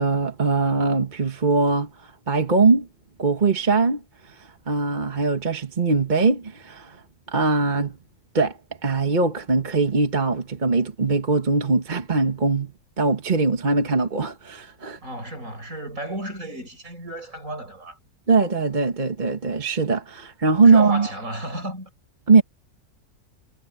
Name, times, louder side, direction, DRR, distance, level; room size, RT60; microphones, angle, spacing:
voice 1, 0.0-1.9 2.3-2.9 3.2-4.0 4.4-7.0 7.3-8.0 8.3-12.7 13.0-15.0 18.3-21.1 22.3-22.4, right 4 dB, 30° right, 1.4 m, -21 dB
voice 2, 15.0-18.0 20.6-21.9, right 1 dB, 55° right, 6.8 m, -33 dB
omnidirectional pair, 1.6 m